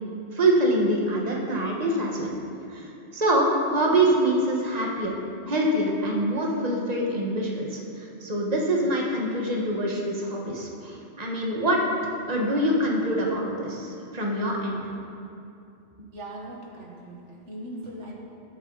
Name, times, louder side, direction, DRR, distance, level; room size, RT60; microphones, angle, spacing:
voice 1, 0.3-2.3 2.7-2.9 3.1-5.1 5.5-11.8 12.3-14.9 16.0-16.1, right 1 dB, 35° right, -2 dB, 1.7 m, -25 dB
voice 2, 16.1-18.1, right 1 dB, 85° right, -2 dB, 2.1 m, -39 dB
21.0 x 8.2 x 4.1 m, 2.6 s
omnidirectional pair, 1.2 m